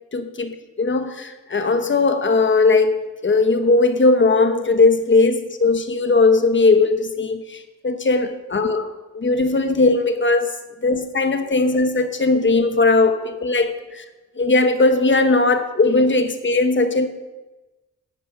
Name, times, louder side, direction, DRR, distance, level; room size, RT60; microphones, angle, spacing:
voice 1, 0.1-10.5 10.8-14.0 14.4-17.1, left 3 dB, 40° left, 8 dB, 1.1 m, -18 dB
10.0 x 8.9 x 5.8 m, 1.1 s
cardioid pair, 85°, 30 cm